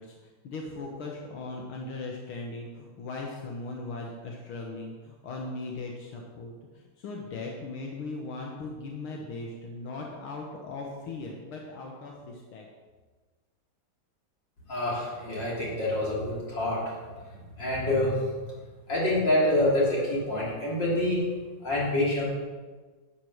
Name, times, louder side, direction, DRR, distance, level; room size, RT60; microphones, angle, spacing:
voice 1, 0.0-12.7, left 3 dB, 75° left, 0 dB, 2.0 m, -38 dB
voice 2, 14.7-17.0 17.3-18.3 18.9-21.3 21.6-22.3, left 1 dB, 55° left, -5 dB, 3.7 m, -27 dB
11.5 x 7.6 x 6.4 m, 1.4 s
omnidirectional pair, 2.4 m